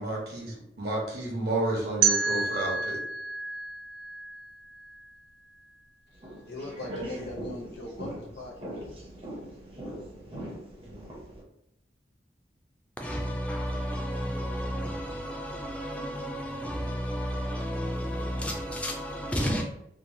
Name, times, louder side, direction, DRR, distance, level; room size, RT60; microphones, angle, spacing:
voice 1, 0.0-3.0, right 2 dB, 65° right, 1.0 m, -31 dB
sound 1, 2.0-5.0, right 5 dB, 90° right, 0.3 m, -29 dB
sound 2, 6.2-11.4, right 1 dB, 30° right, 0.6 m, -41 dB
voice 2, 6.5-8.8, left 2 dB, 75° left, 0.7 m, -40 dB
voice 3, 13.0-19.6, equal, 5° left, 0.3 m, -32 dB
3.0 x 2.2 x 2.6 m
head